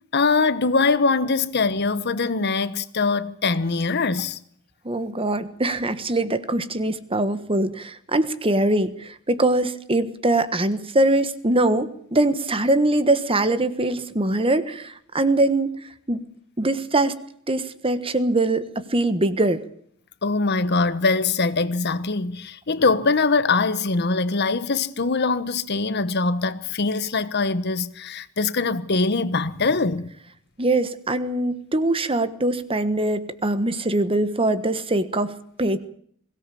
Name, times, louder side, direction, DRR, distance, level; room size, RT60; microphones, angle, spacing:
voice 1, 0.1-4.4 20.2-30.1, left 4 dB, 50° left, 1.1 m, -22 dB
voice 2, 4.8-15.8 16.1-16.2 16.6-17.2 17.5-19.6 30.6-35.3 35.6-35.8, right 2 dB, 25° right, 1.4 m, -22 dB
22.0 x 17.5 x 8.5 m
head